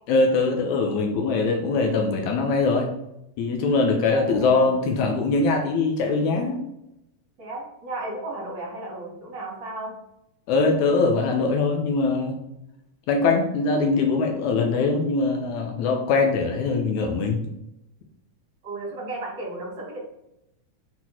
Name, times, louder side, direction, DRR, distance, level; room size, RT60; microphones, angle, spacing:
voice 1, 0.1-2.9 3.4-6.6 10.5-12.4 13.1-17.5, left 3 dB, 80° left, 3 dB, 1.7 m, -22 dB
voice 2, 4.1-4.7 7.4-10.0 18.6-20.0, right 2 dB, 35° right, -3 dB, 2.4 m, -34 dB
6.3 x 4.2 x 4.2 m, 0.86 s
omnidirectional pair, 4.3 m